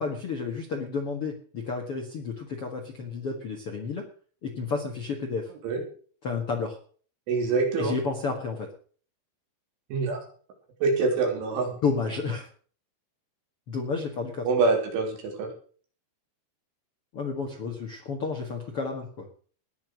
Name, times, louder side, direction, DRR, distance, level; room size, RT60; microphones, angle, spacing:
voice 1, 0.0-4.0 4.4-5.5 6.2-6.8 7.8-8.7 11.8-12.5 13.7-14.5 17.1-19.3, left 4 dB, 55° left, 3 dB, 1.5 m, -31 dB
voice 2, 7.3-7.9 9.9-10.2 10.8-11.7 14.5-15.5, right 4 dB, 85° right, 3 dB, 5.9 m, -25 dB
19.0 x 7.2 x 6.2 m, 0.44 s
omnidirectional pair, 5.4 m